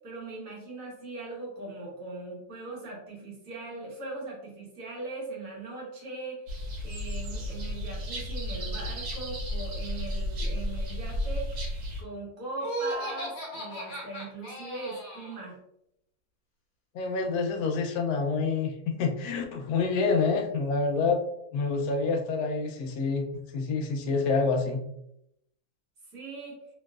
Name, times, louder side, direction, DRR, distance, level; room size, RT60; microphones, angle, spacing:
voice 1, 0.0-6.6 6.8-11.5 12.0-15.6 26.1-26.6, right 3 dB, 65° right, -3 dB, 1.4 m, -40 dB
sound 1, 6.5-12.0, left 1 dB, 85° right, 1.3 m, -33 dB
Laughter, 12.6-15.4, right 1 dB, 70° left, 1.3 m, -36 dB
voice 2, 16.9-21.2 21.5-24.8, left 4 dB, 90° left, 3 dB, 1.1 m, -27 dB
3.1 x 2.9 x 2.3 m, 0.79 s
omnidirectional pair, 1.6 m